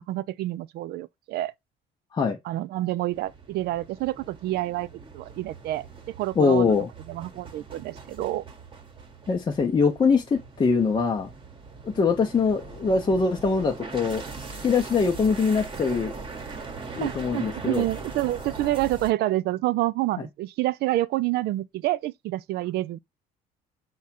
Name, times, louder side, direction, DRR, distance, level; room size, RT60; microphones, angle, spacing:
voice 1, 0.1-1.5 2.5-4.9 5.1-5.9 6.2-6.7 7.1-8.4 17.0-23.0, right 16 dB, 70° right, 0.4 m, -28 dB
sound 1, 3.1-19.1, right 4 dB, 30° right, 1.0 m, -41 dB
voice 2, 6.4-6.9 9.3-11.3 11.8-14.2 14.6-16.1 16.9-17.9, left 5 dB, 30° left, 0.6 m, -23 dB
4.8 x 2.3 x 4.1 m
cardioid pair, 110°, 17 cm